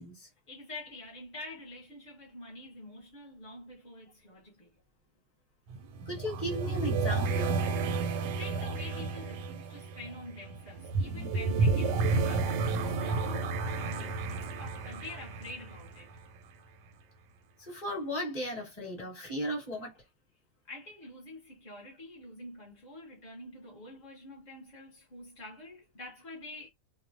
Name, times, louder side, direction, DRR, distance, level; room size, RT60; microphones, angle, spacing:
voice 1, 0.5-4.7 8.0-16.1 20.6-26.7, left 2 dB, 50° left, 0.5 m, -47 dB
sound 1, 5.7-16.5, right 3 dB, 90° right, 1.2 m, -31 dB
voice 2, 6.1-7.6 17.6-19.9, equal, 25° left, 1.0 m, -36 dB
2.8 x 2.0 x 2.6 m
omnidirectional pair, 1.8 m